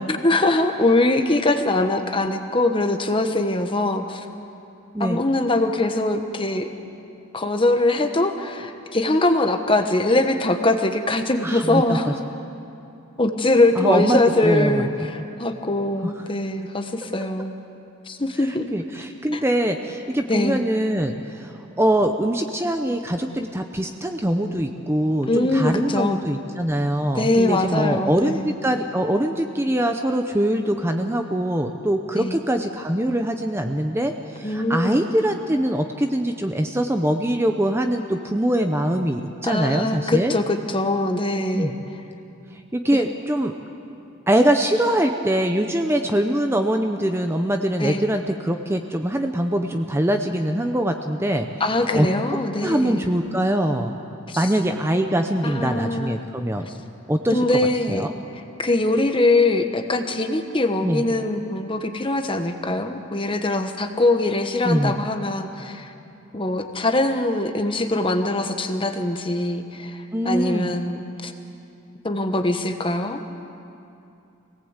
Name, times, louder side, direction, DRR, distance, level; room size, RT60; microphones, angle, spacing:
voice 1, 0.2-4.3 5.0-6.7 7.3-12.1 13.2-17.5 18.1-18.7 19.3-19.4 20.3-20.7 25.3-26.2 27.1-28.5 32.2-32.4 34.4-35.0 39.5-41.7 47.8-48.1 51.6-53.0 54.3-54.5 55.4-56.2 56.7-56.8 57.3-58.1 58.6-65.9 66.3-71.3 72.0-73.2, left 2 dB, 25° left, 6 dB, 1.2 m, -22 dB
voice 2, 11.4-12.1 13.8-14.9 16.0-16.1 18.5-40.3 41.5-41.8 42.5-43.5 44.3-51.5 51.9-52.1 52.6-54.0 54.4-56.7 57.1-57.5 57.9-58.1 60.8-61.0 64.6-65.0 70.1-70.7, right 1 dB, 10° right, 5 dB, 0.7 m, -23 dB
25.0 x 18.0 x 8.1 m, 2.7 s
head